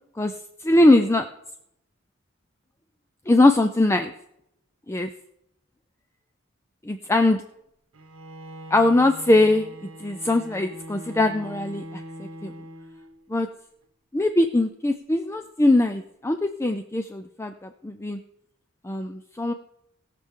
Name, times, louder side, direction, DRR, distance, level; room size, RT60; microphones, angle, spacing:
voice 1, 0.6-1.3 3.3-4.1 4.9-5.1 6.9-7.4 8.7-9.7 10.0-12.5 13.3-13.5 14.1-18.2 18.8-19.5, left 2 dB, 15° left, 7 dB, 0.4 m, -21 dB
Bowed string instrument, 7.9-13.3, right 1 dB, 75° right, 1.1 m, -41 dB
19.5 x 6.8 x 3.7 m, 0.79 s
head